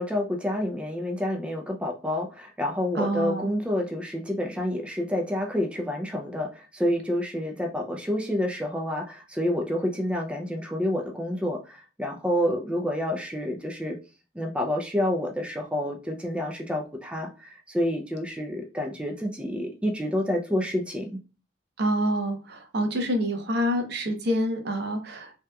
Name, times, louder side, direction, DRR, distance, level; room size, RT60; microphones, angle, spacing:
voice 1, 0.0-14.0 14.3-21.2, left 1 dB, 5° right, 2 dB, 0.4 m, -28 dB
voice 2, 2.9-3.5 21.8-25.3, equal, 65° right, 5 dB, 0.7 m, -27 dB
3.3 x 2.8 x 2.2 m, 0.32 s
head